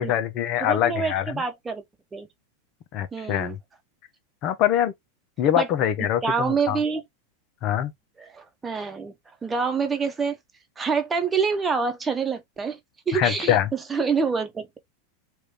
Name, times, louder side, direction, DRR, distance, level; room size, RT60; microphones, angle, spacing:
voice 1, 0.0-1.4 2.9-3.6 4.4-4.9 5.4-6.8 7.6-7.9 13.1-13.7, left 11 dB, 50° left, 0.9 m, -24 dB
voice 2, 0.6-1.8 2.1-2.3 3.1-3.6 5.6-5.7 6.0-7.0 8.2-9.1 9.4-10.4 10.8-12.8 13.1-14.8, right 5 dB, 20° right, 1.1 m, -26 dB
3.2 x 2.6 x 3.2 m
hypercardioid pair, 95°, 0 cm